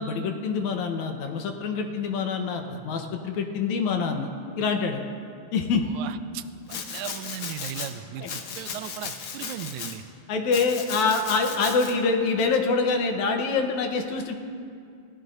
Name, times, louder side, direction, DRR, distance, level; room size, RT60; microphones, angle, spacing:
voice 1, 0.0-4.3 4.6-5.0 5.5-5.8 8.2-8.3 10.3-14.3, left 4 dB, 80° left, 4 dB, 2.3 m, -25 dB
voice 2, 5.8-10.0, right 11 dB, 85° right, 11 dB, 2.0 m, -37 dB
Domestic sounds home sounds, 6.7-7.9 8.2-10.0 10.5-11.9, left 6 dB, 60° left, 1.6 m, -36 dB
27.5 x 16.5 x 2.6 m, 2.3 s
omnidirectional pair, 3.4 m